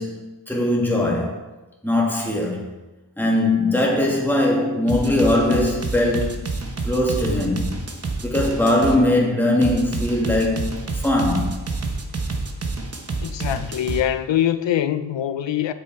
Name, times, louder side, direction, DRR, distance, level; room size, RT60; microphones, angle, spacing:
voice 1, 0.0-1.4 1.8-2.6 3.2-6.5 6.9-7.8 8.2-11.6, left 1 dB, 5° left, 1.8 m, -21 dB
sound 1, 4.9-9.0 9.6-14.0, right 3 dB, 35° right, 0.9 m, -28 dB
voice 2, 13.2-15.7, left 11 dB, 85° left, 0.6 m, -23 dB
7.9 x 6.6 x 4.7 m
wide cardioid pair, 120°, 43 cm